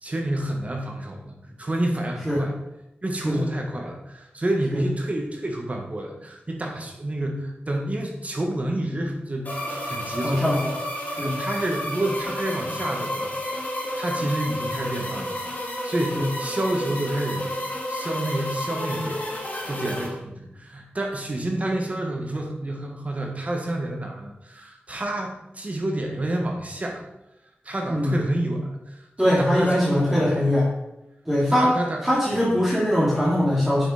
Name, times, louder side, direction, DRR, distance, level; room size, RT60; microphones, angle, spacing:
voice 1, 0.0-2.5 3.0-10.5 11.2-13.4 13.9-15.4 15.8-19.3 19.7-27.0 27.6-30.4 31.5-32.0, right 1 dB, 35° right, 1 dB, 1.7 m, -29 dB
sound 1, 9.4-20.1, left 1 dB, 45° left, 3.0 m, -31 dB
voice 2, 10.2-10.8 11.1-11.4 16.1-16.3 27.9-28.1 29.2-30.7 31.3-31.7 32.0-33.9, equal, 10° right, -7 dB, 2.5 m, -22 dB
8.8 x 6.1 x 5.1 m, 0.87 s
wide cardioid pair, 100°, 4 cm